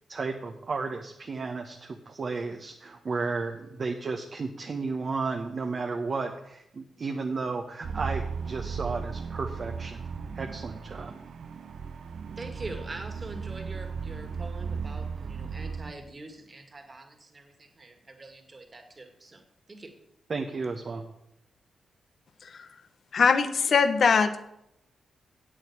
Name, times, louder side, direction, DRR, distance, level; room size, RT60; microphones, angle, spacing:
voice 1, 0.1-10.1 10.3-11.2 20.3-21.0, right 4 dB, 50° right, 1.1 m, -33 dB
sound 1, 7.8-15.9, right 5 dB, 70° right, 0.8 m, -36 dB
voice 2, 12.4-19.4 19.7-19.9, right 2 dB, 35° right, 2.2 m, -44 dB
voice 3, 23.1-24.4, left 5 dB, 60° left, 1.0 m, -22 dB
8.3 x 7.7 x 8.2 m
cardioid pair, 60°, 0 cm